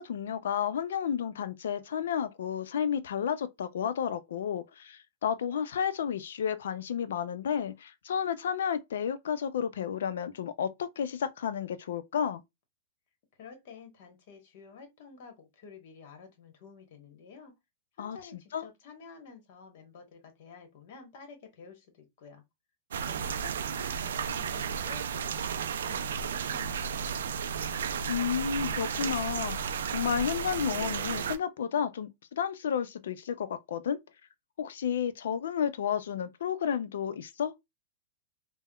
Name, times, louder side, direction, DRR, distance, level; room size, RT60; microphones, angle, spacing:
voice 1, 0.0-12.4 18.0-18.2 18.5-18.6 28.1-32.1 32.4-34.0 34.6-37.5, left 8 dB, 80° left, 0.4 m, -31 dB
voice 2, 13.4-17.5 17.9-22.4 23.0-27.6, left 5 dB, 60° left, 1.1 m, -51 dB
sound 1, 22.9-31.4, right 7 dB, 85° right, 0.3 m, -33 dB
3.4 x 2.1 x 2.2 m
hypercardioid pair, 140°, 0 cm